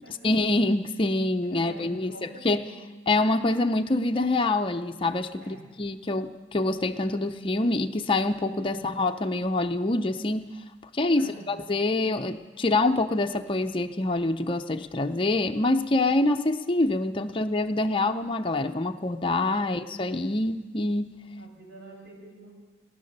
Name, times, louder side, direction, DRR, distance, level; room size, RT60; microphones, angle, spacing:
voice 1, 0.2-2.7 3.1-10.5 10.9-21.1, left 2 dB, 25° left, 5 dB, 0.5 m, -26 dB
voice 2, 1.5-2.8 5.4-5.7 11.2-11.6 21.4-22.5, right 2 dB, 70° right, -2 dB, 5.6 m, -47 dB
19.0 x 10.5 x 6.6 m, 1.3 s
head